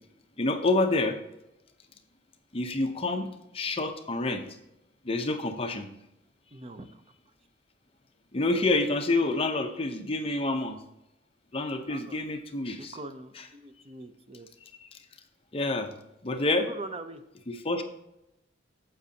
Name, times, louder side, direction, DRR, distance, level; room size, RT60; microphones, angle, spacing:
voice 1, 0.4-1.2 2.5-4.4 5.0-5.9 8.3-10.8 11.5-12.9 15.5-15.9 16.2-16.6 17.5-17.8, left 2 dB, 30° left, 5 dB, 0.8 m, -28 dB
voice 2, 6.5-7.0 11.8-12.2 12.7-14.5 16.5-17.2, right 2 dB, 30° right, 9 dB, 0.6 m, -42 dB
9.2 x 7.3 x 2.8 m, 0.86 s
head